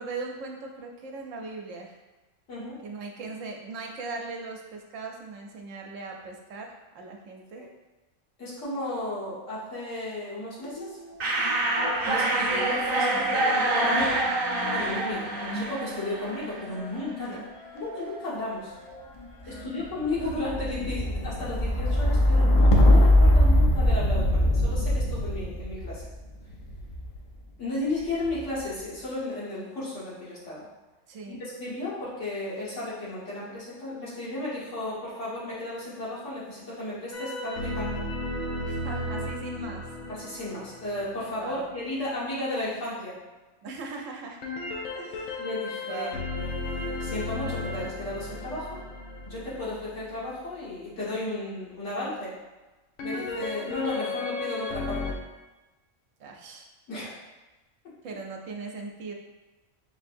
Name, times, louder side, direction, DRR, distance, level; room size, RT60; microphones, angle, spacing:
voice 1, 0.0-2.0 2.8-7.7 17.3-17.5 19.4-19.8 31.1-31.4 38.6-40.0 41.4-41.7 43.6-44.4 44.9-45.4 45.9-46.1 56.2-56.7 58.0-59.1, right 3 dB, 80° right, 1 dB, 1.0 m, -39 dB
voice 2, 2.5-2.8 7.6-7.7 8.4-11.0 12.0-14.2 14.7-17.4 17.7-18.7 19.5-26.1 27.6-30.6 31.3-38.0 40.1-43.2 45.4-48.8 49.2-52.3 53.0-55.1 56.9-57.2, left 2 dB, 70° left, -9 dB, 1.7 m, -34 dB
sound 1, 10.6-12.0 12.2-27.3 28.0-28.6, left 1 dB, 40° left, 0.4 m, -24 dB
sound 2, 11.2-16.7, right 2 dB, 55° right, 0.8 m, -26 dB
sound 3, 37.1-41.7 44.4-50.4 53.0-55.1, left 2 dB, 90° left, 1.0 m, -34 dB
5.6 x 2.7 x 2.5 m, 1.1 s
omnidirectional pair, 1.3 m